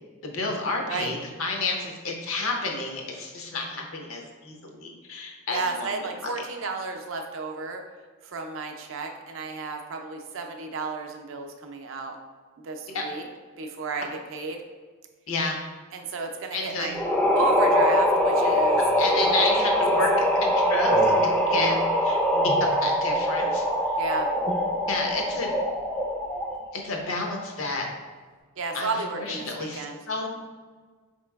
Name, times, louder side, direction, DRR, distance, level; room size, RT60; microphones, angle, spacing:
voice 1, 0.2-6.3 12.9-13.0 15.3-15.6 16.5-17.0 19.0-23.6 24.9-25.5 26.7-27.9 28.7-30.3, left 3 dB, 70° left, 1 dB, 0.6 m, -30 dB
voice 2, 5.5-7.8 8.2-12.2 12.6-13.2 13.6-14.6 15.9-16.9 17.3-19.4 23.9-24.3 28.6-30.0, right 4 dB, 60° right, 4 dB, 0.4 m, -33 dB
sound 1, 16.9-26.7, equal, 5° left, 0.3 m, -23 dB
4.5 x 2.9 x 2.3 m, 1.5 s
head